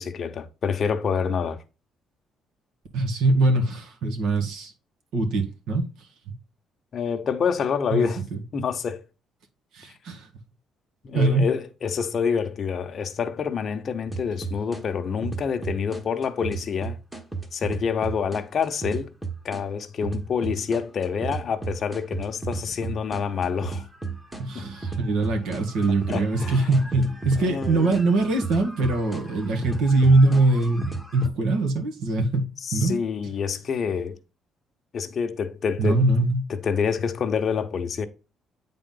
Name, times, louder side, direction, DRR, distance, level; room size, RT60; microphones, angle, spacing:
voice 1, 0.0-1.6 6.9-8.2 8.5-9.0 11.0-17.0 17.5-19.1 19.4-23.9 26.1-26.8 27.3-27.9 32.6-34.2 34.9-36.0 36.5-38.1, left 6 dB, 35° left, 0.9 m, -27 dB
voice 2, 2.9-4.7 5.1-6.1 7.9-8.4 9.7-10.3 11.1-11.5 24.4-33.0 35.8-36.5, right 2 dB, 80° right, 1.8 m, -22 dB
sound 1, 14.1-14.8 15.2-19.6 20.0-31.3, right 4 dB, 10° right, 1.1 m, -34 dB
9.0 x 3.8 x 3.8 m
cardioid pair, 165°, 0 cm